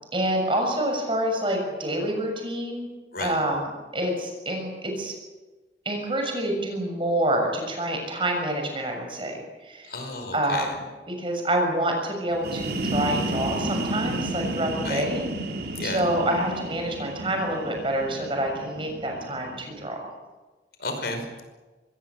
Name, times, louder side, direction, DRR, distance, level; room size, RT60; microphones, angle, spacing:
voice 1, 0.1-2.9 3.2-5.1 5.8-9.4 9.6-9.9 10.3-15.2 15.8-20.0, right 1 dB, 30° right, 3 dB, 6.6 m, -27 dB
voice 2, 9.8-10.8 14.8-15.1 15.8-16.0 20.8-21.4, left 2 dB, 60° left, 5 dB, 5.3 m, -32 dB
sound 1, 12.3-19.9, right 2 dB, 60° right, 3.2 m, -32 dB
24.5 x 20.5 x 7.6 m, 1.2 s
head